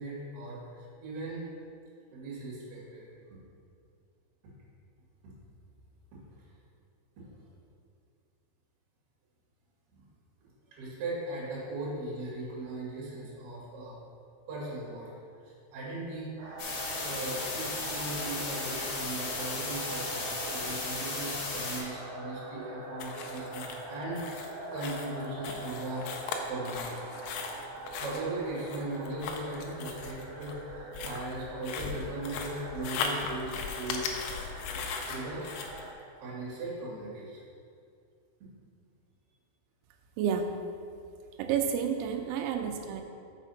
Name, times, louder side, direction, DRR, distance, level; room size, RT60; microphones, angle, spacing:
voice 1, 0.0-1.5 2.1-3.0 9.9-10.0 10.7-13.9 14.5-15.1 15.4-16.3 17.0-26.0 26.5-27.0 28.0-34.1 35.1-35.4 36.2-37.4, right 2 dB, 45° right, -6 dB, 2.7 m, -38 dB
sound 1, 16.4-35.9, right 2 dB, 70° right, 2.8 m, -43 dB
sound 2, 16.6-21.8, left 3 dB, 65° left, 2.9 m, -35 dB
sound 3, 23.0-35.8, left 5 dB, 85° left, 2.8 m, -38 dB
voice 2, 40.2-40.6 41.4-43.0, right 7 dB, 85° right, 5 dB, 3.3 m, -30 dB
6.2 x 6.1 x 5.8 m, 2.3 s
omnidirectional pair, 6.0 m